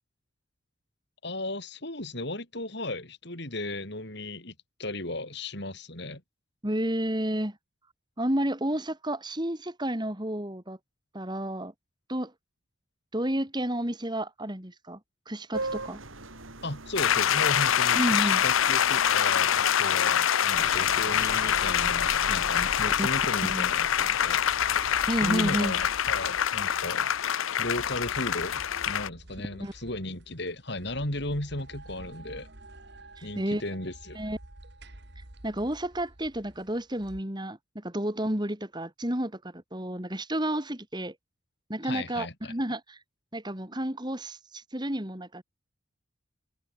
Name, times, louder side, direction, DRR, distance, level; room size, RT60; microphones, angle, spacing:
voice 1, 1.2-4.5 4.8-6.2 16.6-24.4 25.2-27.1 27.6-32.5 33.2-34.2 41.8-42.5, left 2 dB, 55° left, 6.6 m, -35 dB
voice 2, 6.6-7.6 8.2-10.8 11.1-11.7 12.1-12.3 13.1-15.0 15.3-16.0 17.9-18.4 23.0-23.1 23.4-23.7 25.1-25.8 29.6-29.7 33.2-33.6 34.1-34.4 35.4-41.1 41.7-43.0 43.3-45.4, right 1 dB, 20° right, 3.1 m, -31 dB
sound 1, 15.5-20.5, right 2 dB, 85° right, 7.4 m, -41 dB
sound 2, 17.0-29.1, left 9 dB, 85° left, 0.6 m, -25 dB
sound 3, 20.5-37.2, right 1 dB, 55° right, 2.7 m, -45 dB
head